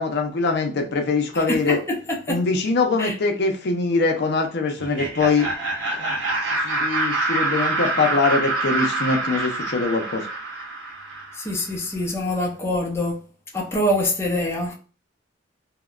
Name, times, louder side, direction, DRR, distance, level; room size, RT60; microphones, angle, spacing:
voice 1, 0.0-1.8 2.3-5.5 5.9-6.2 6.5-10.3, left 3 dB, 60° left, 0.6 m, -23 dB
voice 2, 1.3-2.0 2.3-2.4 3.0-3.1 11.4-13.2 13.5-14.7, left 1 dB, 15° left, 0.6 m, -25 dB
Laughter, 4.8-11.6, right 2 dB, 80° right, 0.9 m, -26 dB
2.8 x 2.1 x 2.3 m
head